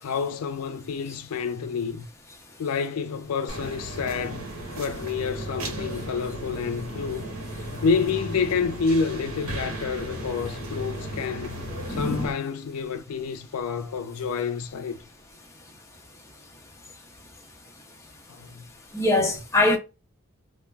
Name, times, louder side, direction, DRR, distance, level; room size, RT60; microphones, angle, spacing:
voice 1, 0.0-2.1 2.6-4.4 4.8-7.3 7.8-11.6 11.9-15.0 18.3-18.6, left 5 dB, 80° left, 0.4 m, -28 dB
sound 1, 3.5-12.3, right 1 dB, 75° right, 0.9 m, -35 dB
voice 2, 11.9-12.3 18.9-19.8, left 2 dB, 15° left, 0.5 m, -22 dB
2.3 x 2.1 x 3.3 m
head